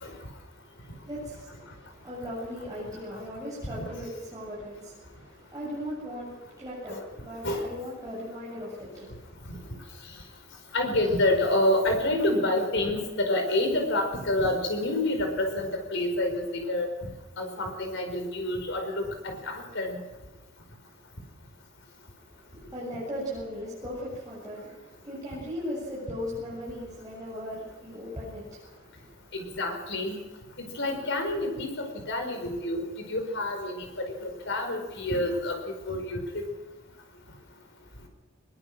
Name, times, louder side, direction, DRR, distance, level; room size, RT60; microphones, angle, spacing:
voice 1, 0.8-9.8 22.3-29.4, equal, 20° right, -9 dB, 7.9 m, -38 dB
voice 2, 10.7-16.9 17.4-20.0 29.3-30.2 30.7-32.8 33.1-36.4, left 1 dB, 65° left, 4 dB, 5.2 m, -28 dB
22.0 x 21.5 x 6.4 m, 1.3 s
head